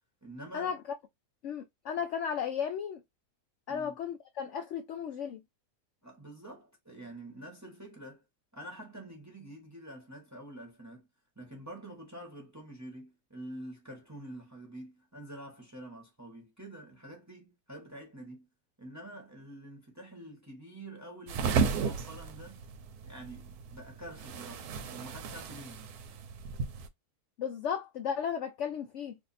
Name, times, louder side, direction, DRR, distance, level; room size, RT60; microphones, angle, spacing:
voice 1, 0.2-0.7 3.7-4.0 6.0-8.2 8.5-11.1 11.4-18.5 18.8-22.6 23.0-26.0, right 1 dB, 15° right, 0.8 m, -47 dB
voice 2, 1.4-3.0 3.7-5.4 27.4-29.2, left 7 dB, 75° left, 0.6 m, -34 dB
sound 1, 21.3-26.9, right 5 dB, 75° right, 1.1 m, -34 dB
2.7 x 2.6 x 4.0 m
omnidirectional pair, 1.8 m